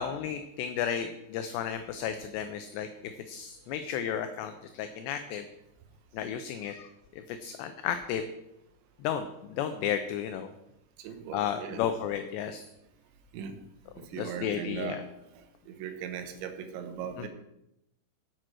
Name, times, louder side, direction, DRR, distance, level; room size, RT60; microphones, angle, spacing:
voice 1, 0.0-2.9 3.3-5.5 6.1-8.3 9.0-10.5 11.3-12.6 14.2-15.0 17.2-17.3, left 9 dB, 80° left, 8 dB, 2.6 m, -33 dB
voice 2, 11.0-11.8 13.3-13.6 14.1-15.0 15.4-17.3, right 7 dB, 80° right, 8 dB, 3.4 m, -38 dB
9.4 x 8.8 x 6.2 m, 0.85 s
omnidirectional pair, 5.4 m